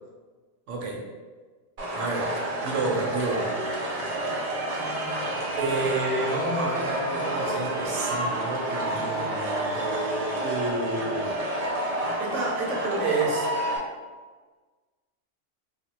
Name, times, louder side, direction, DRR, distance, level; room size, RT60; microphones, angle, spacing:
voice 1, 0.7-1.1 1.9-2.4 2.6-3.5 5.6-11.3 12.2-13.5, right 2 dB, 80° right, -1 dB, 1.0 m, -30 dB
sound 1, 1.8-13.8, right 1 dB, 50° right, 0.5 m, -29 dB
3.3 x 2.2 x 2.8 m, 1.4 s
omnidirectional pair, 1.3 m